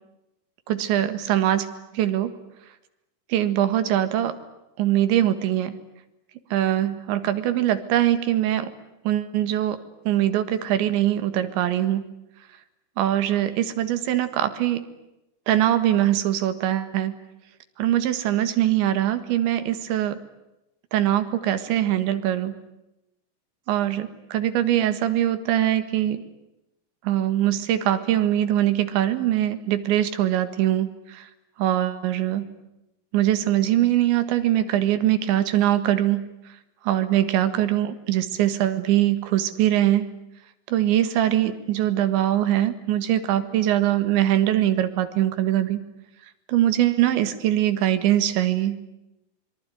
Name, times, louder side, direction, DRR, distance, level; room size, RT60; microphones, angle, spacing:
voice 1, 0.7-2.4 3.3-4.4 4.8-5.8 6.5-8.7 9.1-9.8 10.1-12.1 13.0-14.9 15.5-17.2 17.8-20.2 20.9-22.6 23.7-26.2 27.0-31.3 31.6-32.5 33.1-36.3 36.8-40.1 40.7-45.8 46.5-48.8, right 12 dB, 75° right, 10 dB, 4.0 m, -22 dB
25.5 x 23.5 x 9.4 m, 0.91 s
omnidirectional pair, 5.3 m